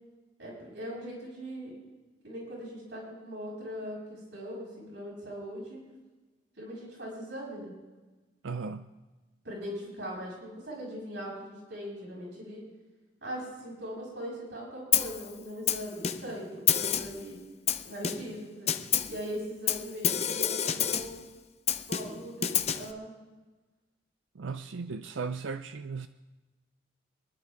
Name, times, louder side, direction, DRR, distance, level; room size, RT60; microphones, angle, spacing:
voice 1, 0.4-1.7 2.2-5.8 6.6-7.7 9.4-12.6 13.2-17.4 17.8-18.7 19.1-21.2 21.9-23.2, equal, 70° right, -4 dB, 6.6 m, -40 dB
voice 2, 8.4-8.9 24.3-26.1, right 4 dB, 85° right, 10 dB, 0.5 m, -36 dB
Snare drum, 14.9-15.2 15.7-16.4 16.7-17.2 17.7-18.4 18.7-19.2 19.7-21.2 21.7-22.9, left 9 dB, 35° left, 0.6 m, -28 dB
26.0 x 11.5 x 3.5 m, 1.2 s
head